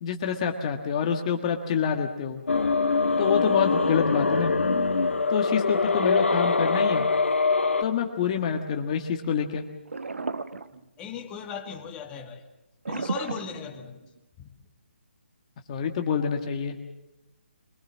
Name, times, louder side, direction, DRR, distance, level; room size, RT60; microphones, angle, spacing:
voice 1, 0.0-2.4 3.2-4.5 5.3-7.1 7.8-9.6 15.7-16.8, left 7 dB, 35° left, 4 dB, 1.6 m, -27 dB
sound 1, 2.5-7.8, left 4 dB, 85° left, 1.8 m, -23 dB
sound 2, 9.9-11.2 12.9-14.2, right 3 dB, 85° right, 1.1 m, -33 dB
voice 2, 11.0-12.4 12.9-14.0 14.4-14.5, left 7 dB, 15° left, 2 dB, 1.8 m, -37 dB
24.0 x 19.5 x 7.5 m, 0.94 s
hypercardioid pair, 155°, 6 cm